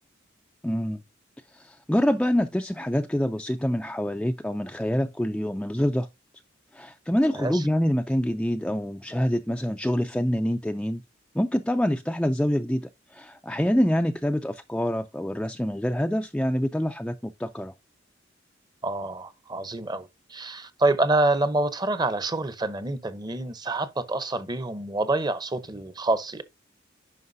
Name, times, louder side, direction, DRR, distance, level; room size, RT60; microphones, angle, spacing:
voice 1, 0.6-1.0 1.5-6.1 6.7-11.0 11.3-12.8 13.1-17.7, equal, 5° left, 0.4 m, -26 dB
voice 2, 18.8-26.4, right 2 dB, 20° right, 0.7 m, -27 dB
9.4 x 5.7 x 2.7 m
head